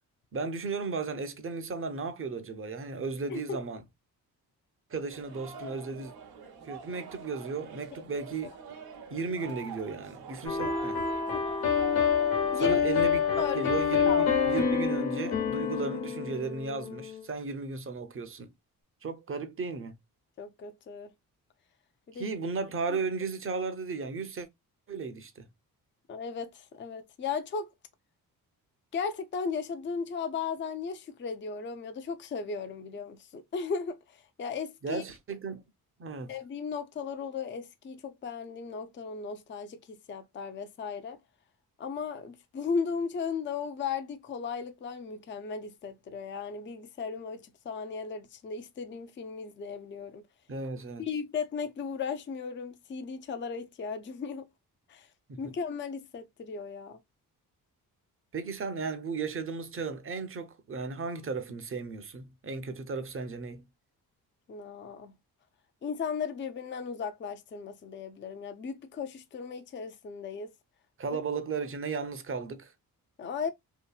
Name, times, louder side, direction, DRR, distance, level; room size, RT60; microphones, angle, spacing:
voice 1, 0.3-3.8 4.9-6.1 6.6-8.5 9.1-11.0 12.5-18.5 19.0-19.9 22.1-24.5 24.9-25.5 34.8-35.6 36.0-36.3 50.5-51.0 55.3-55.4 58.3-63.7 71.0-72.7, right 4 dB, 35° right, 0.7 m, -35 dB
sound 1, 5.1-14.6, right 5 dB, 90° right, 0.9 m, -46 dB
sound 2, 10.5-17.2, left 6 dB, 90° left, 1.2 m, -27 dB
voice 2, 13.4-13.7 14.1-14.5 20.4-21.1 22.1-22.4 22.9-23.0 26.1-27.7 28.9-35.0 36.3-41.2 41.8-50.2 51.0-54.5 54.9-55.1 55.4-57.0 64.5-65.2 65.8-70.5 71.1-71.2 73.2-73.5, left 5 dB, 30° left, 0.5 m, -36 dB
2.8 x 2.6 x 2.3 m
cardioid pair, 85°, 36 cm